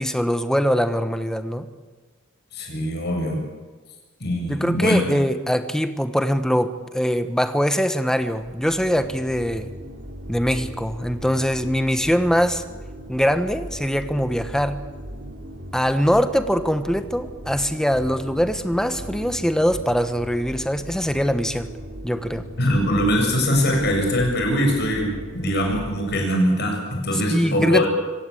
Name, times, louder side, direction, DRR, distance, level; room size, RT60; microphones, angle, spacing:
voice 1, 0.0-1.7 4.5-9.7 10.3-12.6 13.1-14.8 15.7-21.7 22.0-22.5 27.3-27.9, equal, 5° left, 9 dB, 1.1 m, -22 dB
voice 2, 2.5-3.5 4.2-5.1 22.6-27.9, equal, 55° left, 1 dB, 7.2 m, -22 dB
sound 1, 8.1-26.1, equal, 55° right, 3.3 m, -38 dB
26.0 x 17.0 x 8.6 m, 1.4 s
head